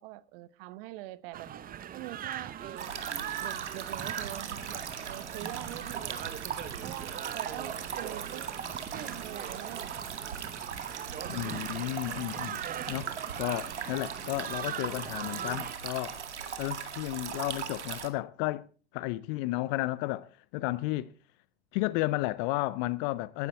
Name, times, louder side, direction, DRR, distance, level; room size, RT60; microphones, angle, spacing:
voice 1, 0.0-1.5 1.9-2.9 3.4-6.4 6.8-8.5 8.9-9.9 11.2-11.8, right 16 dB, 55° right, 1.1 m, -44 dB
sound 1, 1.3-15.8, right 10 dB, 25° right, 0.9 m, -41 dB
sound 2, 2.8-18.1, right 7 dB, 90° right, 2.1 m, -39 dB
voice 2, 11.3-12.6 12.9-13.1 13.4-16.2 16.6-18.7 18.9-21.1 21.7-23.5, left 18 dB, 50° left, 0.7 m, -33 dB
19.5 x 11.0 x 4.5 m
hypercardioid pair, 100°, 34 cm